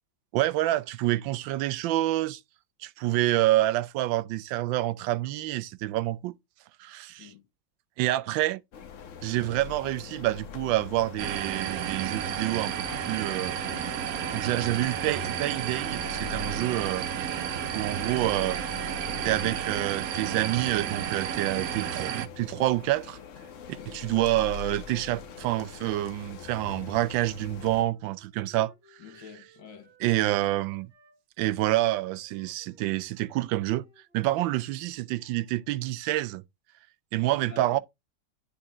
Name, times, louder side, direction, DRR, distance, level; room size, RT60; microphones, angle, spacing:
voice 1, 0.3-2.4 2.8-6.3 6.8-7.3 8.0-8.6 9.2-13.6 14.3-17.1 17.7-18.6 19.2-23.2 23.7-28.7 30.0-30.9 31.4-33.8 34.1-36.4 37.1-37.8, right 16 dB, 90° right, 1.3 m, -27 dB
sound 1, 8.7-27.8, left 7 dB, 55° left, 1.0 m, -43 dB
sound 2, 11.2-22.3, right 10 dB, 65° right, 1.0 m, -32 dB
Wind instrument woodwind instrument, 27.8-31.2 31.5-35.8, right 2 dB, 50° right, 6.3 m, -61 dB
voice 2, 29.0-30.5 37.4-37.8, left 8 dB, 75° left, 1.8 m, -48 dB
9.9 x 3.9 x 3.6 m
omnidirectional pair, 2.0 m